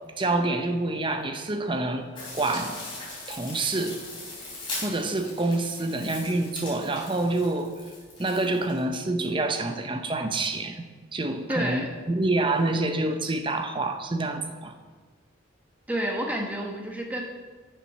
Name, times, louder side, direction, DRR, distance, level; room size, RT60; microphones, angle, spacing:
voice 1, 0.2-2.1 2.3-2.8 3.3-4.0 4.8-7.7 8.2-10.8 11.1-14.7, right 2 dB, 25° right, 6 dB, 0.6 m, -27 dB
sound 1, 2.2-8.8, left 2 dB, 25° left, 3.3 m, -39 dB
voice 2, 11.5-11.9 15.9-17.2, equal, 5° right, 0 dB, 1.1 m, -29 dB
9.0 x 7.0 x 5.7 m, 1.4 s
head